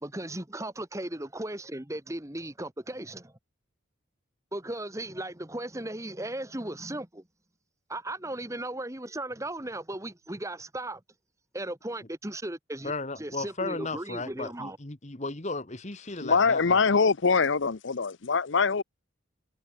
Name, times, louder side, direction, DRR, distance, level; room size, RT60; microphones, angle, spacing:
voice 1, 0.0-3.3 4.5-7.2 7.9-11.0 11.5-14.8, right 1 dB, 15° right, 1.6 m, -36 dB
voice 2, 12.8-16.8, left 3 dB, 35° left, 1.6 m, -35 dB
voice 3, 16.2-18.8, left 5 dB, 60° left, 0.7 m, -23 dB
head